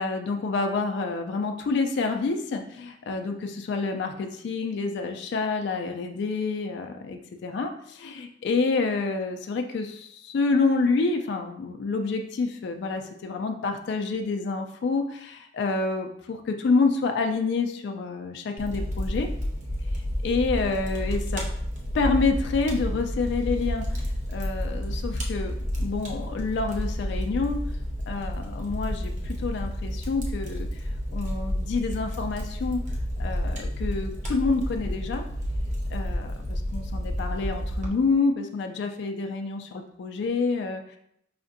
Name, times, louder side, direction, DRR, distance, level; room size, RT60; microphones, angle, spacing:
voice 1, 0.0-19.3 20.2-21.4 21.9-25.5 25.8-27.6 28.1-30.7 31.1-32.8 33.2-35.2 35.9-40.8, left 4 dB, 60° left, 4 dB, 0.3 m, -28 dB
Fire, 18.6-37.9, equal, 40° right, 0.6 m, -30 dB
4.9 x 2.5 x 2.5 m, 0.74 s
head